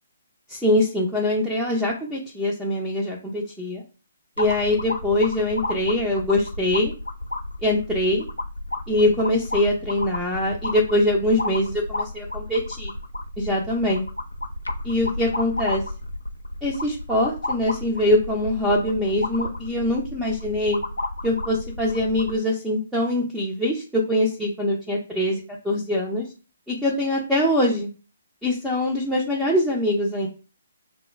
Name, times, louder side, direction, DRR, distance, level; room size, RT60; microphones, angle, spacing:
voice 1, 0.5-3.8 4.4-6.9 7.6-8.2 8.9-12.9 13.4-14.0 14.8-15.8 16.6-20.8 21.2-26.3 26.7-27.9 28.4-30.3, left 1 dB, 5° right, -4 dB, 0.5 m, -23 dB
sound 1, 4.4-22.4, left 2 dB, 85° left, 0.4 m, -32 dB
2.2 x 2.0 x 3.1 m, 0.34 s
figure-of-eight pair, 135°, 0 cm